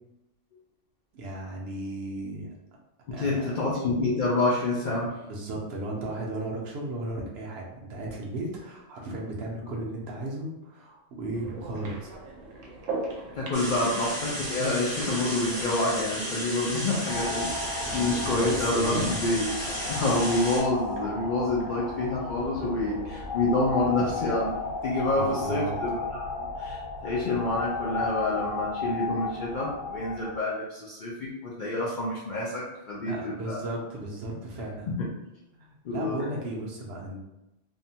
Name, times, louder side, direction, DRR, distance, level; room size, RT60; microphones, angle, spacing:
voice 1, 1.1-2.5 3.1-3.5 5.2-12.1 17.8-19.2 25.1-25.7 33.1-34.9 35.5-37.2, right 2 dB, 65° right, -2 dB, 0.8 m, -35 dB
voice 2, 3.1-5.2 13.3-19.5 19.8-24.5 24.8-33.6 34.9-35.1 35.8-36.2, left 2 dB, 65° left, -6 dB, 0.5 m, -28 dB
sound 1, 11.3-25.3, right 2 dB, 90° right, 1.0 m, -42 dB
sound 2, 13.5-20.6, equal, 30° left, 0.9 m, -34 dB
sound 3, 17.1-30.4, left 3 dB, 85° left, 1.0 m, -34 dB
2.6 x 2.1 x 2.7 m, 0.92 s
omnidirectional pair, 1.3 m